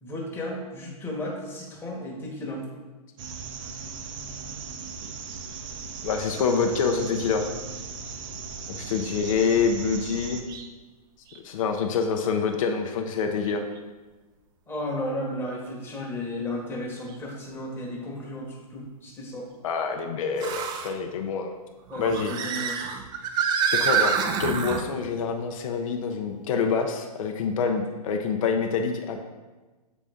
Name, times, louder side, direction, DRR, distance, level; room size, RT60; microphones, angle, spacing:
voice 1, 0.0-2.7 14.7-19.5 21.9-22.8, left 1 dB, 10° left, -2 dB, 1.2 m, -34 dB
sound 1, 3.2-10.4, right 5 dB, 55° right, 0.7 m, -38 dB
voice 2, 6.0-7.5 8.7-10.4 11.4-13.6 19.6-21.5 22.0-22.3 23.7-29.2, left 5 dB, 55° left, 4 dB, 0.6 m, -26 dB
sound 2, 10.5-10.7 11.3-11.4 13.5-13.6 17.1-17.2 20.4-20.9 21.9-24.8, right 6 dB, 20° right, 0.4 m, -27 dB
7.1 x 4.0 x 3.5 m, 1.2 s
hypercardioid pair, 120°, 20 cm